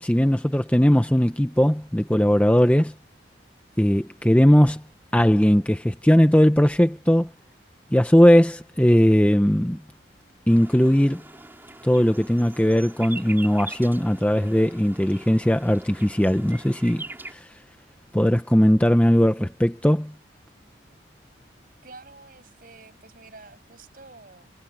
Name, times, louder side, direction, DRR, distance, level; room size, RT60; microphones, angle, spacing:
voice 1, 0.0-2.9 3.8-4.8 5.1-7.3 7.9-9.8 10.5-11.2 11.8-17.0 17.3-17.5 18.1-20.1, equal, 5° left, 0.8 m, -19 dB
sound 1, 10.5-17.3, right 2 dB, 10° right, 6.0 m, -42 dB
voice 2, 21.8-24.5, right 3 dB, 45° right, 6.4 m, -48 dB
head